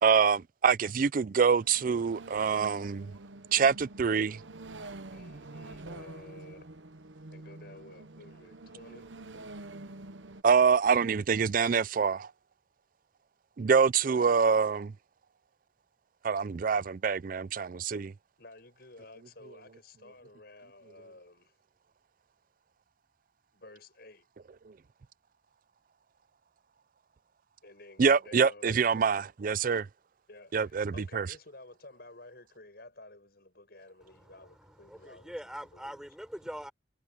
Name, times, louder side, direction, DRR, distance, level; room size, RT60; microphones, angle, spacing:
voice 1, 0.0-3.1 3.5-4.4 10.4-12.3 13.6-14.9 16.2-18.1 28.0-29.9 30.5-31.3, right 6 dB, 45° right, 0.4 m, -25 dB
sound 1, 1.5-10.4, right 2 dB, 80° right, 1.0 m, -46 dB
voice 2, 4.1-4.4 5.1-6.7 7.3-9.1 18.4-21.5 23.5-24.3 27.6-28.8 30.3-35.4 35.7-36.0, left 2 dB, 55° left, 7.4 m, -52 dB
voice 3, 34.0-36.7, equal, 5° right, 4.0 m, -43 dB
head